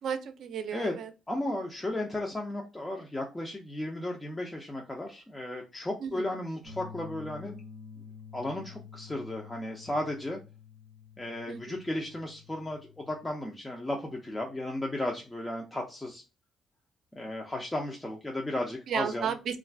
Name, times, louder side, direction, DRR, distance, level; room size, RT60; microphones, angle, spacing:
voice 1, 0.0-1.1 6.0-6.4 11.5-11.8 18.9-19.6, right 7 dB, 70° right, 9 dB, 0.4 m, -34 dB
voice 2, 1.3-7.6 8.3-10.4 11.2-16.2 17.1-19.3, left 1 dB, 15° left, 0 dB, 0.5 m, -34 dB
sound 1, 6.6-13.3, left 6 dB, 55° left, 1.0 m, -49 dB
2.4 x 2.3 x 3.3 m, 0.30 s
cardioid pair, 90°, 0 cm